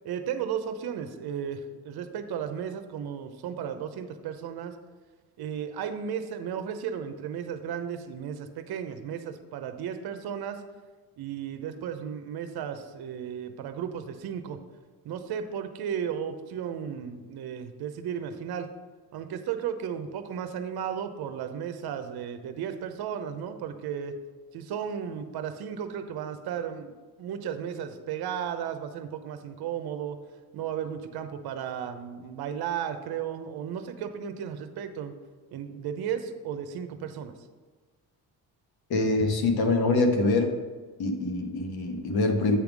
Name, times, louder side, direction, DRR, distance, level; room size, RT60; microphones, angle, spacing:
voice 1, 0.0-4.8 5.4-10.6 11.2-14.6 15.0-18.7 19.1-24.2 24.5-30.2 30.5-35.1 35.5-37.3, right 8 dB, 75° right, 9 dB, 0.8 m, -34 dB
voice 2, 38.9-40.5 41.0-42.6, left 2 dB, 70° left, 4 dB, 1.2 m, -24 dB
8.7 x 3.5 x 6.1 m, 1.4 s
cardioid pair, 80°, 38 cm